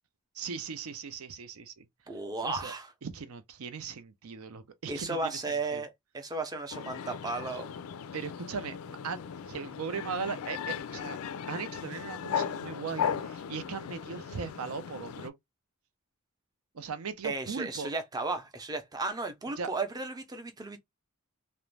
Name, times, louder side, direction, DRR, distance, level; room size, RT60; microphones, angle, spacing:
voice 1, 0.3-1.9 2.4-2.7 3.0-5.4 5.7-5.8 8.1-9.2 9.5-11.2 11.5-15.3 16.7-17.9 19.6-19.7, right 5 dB, 75° right, 0.5 m, -38 dB
voice 2, 2.1-2.9 4.9-7.7 17.2-20.8, right 3 dB, 20° right, 0.5 m, -34 dB
sound 1, 6.7-15.3, left 7 dB, 80° left, 0.4 m, -37 dB
2.4 x 2.1 x 3.1 m
head